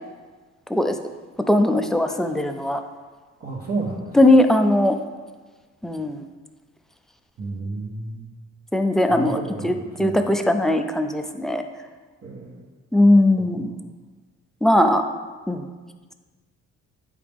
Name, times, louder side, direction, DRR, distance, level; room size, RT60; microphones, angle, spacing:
voice 1, 1.5-2.8 4.1-5.0 5.8-6.2 8.7-11.6 12.9-13.7 14.6-15.0 15.5-15.7, left 1 dB, ahead, 6 dB, 0.5 m, -19 dB
voice 2, 3.4-4.2 7.4-8.3 9.1-10.3 12.2-12.6 13.4-13.6, right 3 dB, 50° right, -5 dB, 1.2 m, -32 dB
8.8 x 4.8 x 3.5 m, 1.4 s
cardioid pair, 90°, 30 cm